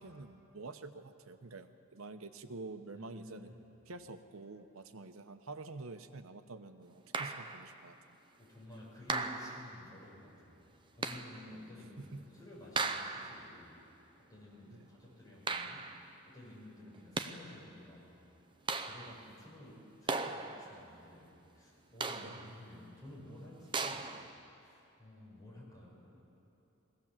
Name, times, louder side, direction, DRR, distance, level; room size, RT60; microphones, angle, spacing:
voice 1, 0.0-3.5 3.9-8.2 12.0-12.3 14.6-14.9 22.1-22.5, right 3 dB, 75° right, 9 dB, 0.9 m, -48 dB
voice 2, 2.9-3.6 8.4-10.7 10.9-13.8 14.2-16.0 16.2-18.1 18.7-24.2 24.6-26.2, left 1 dB, 15° left, -6 dB, 6.4 m, -53 dB
sound 1, 7.1-7.7 9.1-9.8 11.0-11.5 12.8-13.5 15.5-16.1 16.9-17.6 18.7-19.3 20.1-20.8 22.0-22.6 23.7-24.3, right 4 dB, 20° right, 0.7 m, -37 dB
21.5 x 17.0 x 7.4 m, 2.9 s
head